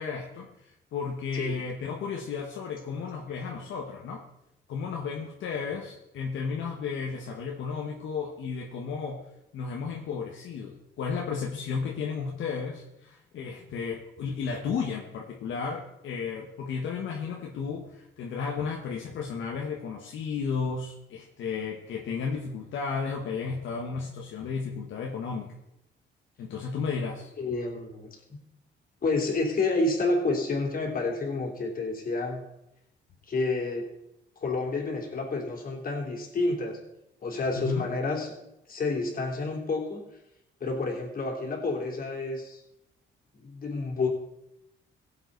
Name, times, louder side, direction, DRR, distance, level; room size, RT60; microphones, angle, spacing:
voice 1, 0.0-4.2 4.7-9.2 9.5-25.5 26.4-27.3 37.6-37.8, left 5 dB, 75° left, 0 dB, 1.5 m, -33 dB
voice 2, 27.4-28.4 29.0-32.4 33.3-33.9 34.4-36.8 37.2-38.3 38.7-40.0 40.6-42.6 43.3-44.1, left 3 dB, 45° left, 0 dB, 3.4 m, -29 dB
16.5 x 7.9 x 4.1 m, 0.84 s
cardioid pair, 90°, 20 cm